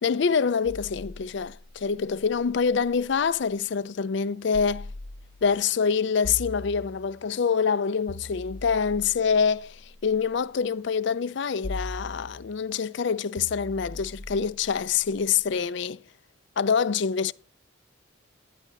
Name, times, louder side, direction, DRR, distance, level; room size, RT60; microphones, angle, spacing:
voice 1, 0.0-4.9 5.4-16.0 16.6-17.3, left 6 dB, 60° left, 0.4 m, -26 dB
sound 1, 0.6-3.4 4.5-5.6 6.2-7.4 8.1-10.3 11.6-12.7 13.4-15.5, left 1 dB, 90° left, 0.7 m, -41 dB
11.0 x 10.0 x 4.0 m
head